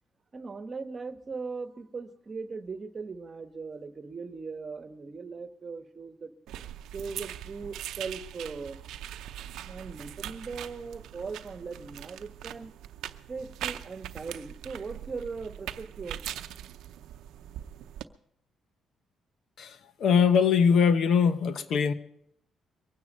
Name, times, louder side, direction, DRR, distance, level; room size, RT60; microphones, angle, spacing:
voice 1, 0.3-6.3 6.9-8.8 9.4-12.7 13.3-16.2, right 4 dB, 35° right, 9 dB, 1.2 m, -39 dB
sound 1, 6.5-18.0, right 11 dB, 85° right, 0.6 m, -41 dB
voice 2, 19.6-21.9, left 6 dB, 70° left, 11 dB, 1.0 m, -22 dB
22.5 x 9.6 x 5.4 m, 0.72 s
cardioid pair, 90°, 0 cm